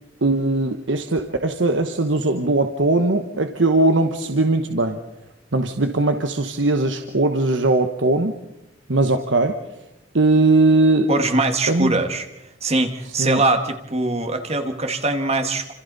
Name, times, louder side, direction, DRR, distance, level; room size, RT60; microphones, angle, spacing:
voice 1, 0.2-5.0 5.5-8.3 8.9-9.6 10.1-11.1 11.7-12.0 13.2-13.4, right 2 dB, 75° right, 6 dB, 1.2 m, -19 dB
voice 2, 11.1-12.3 12.6-15.7, right 2 dB, 35° right, 6 dB, 1.9 m, -22 dB
29.5 x 26.5 x 4.1 m, 0.89 s
head